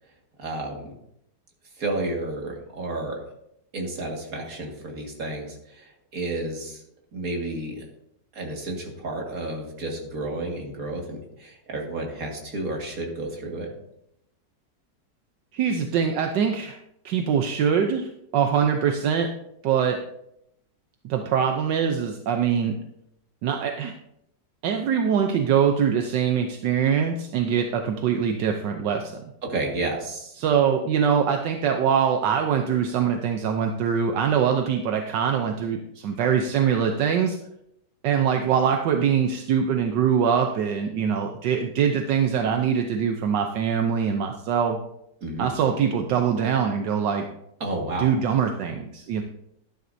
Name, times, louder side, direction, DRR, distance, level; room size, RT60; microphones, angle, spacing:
voice 1, 0.4-0.9 1.8-3.2 3.7-5.8 6.1-6.8 7.1-7.8 8.3-13.7 29.5-30.3 45.2-45.5 47.6-48.1, right 2 dB, 50° right, 0 dB, 2.3 m, -31 dB
voice 2, 15.5-16.8 17.0-19.3 19.6-20.0 21.0-22.7 23.4-23.9 24.6-29.2 30.4-37.4 38.0-44.8 45.4-47.3 48.0-49.2, right 7 dB, 80° right, 4 dB, 1.4 m, -23 dB
12.0 x 11.0 x 2.7 m, 0.78 s
omnidirectional pair, 1.9 m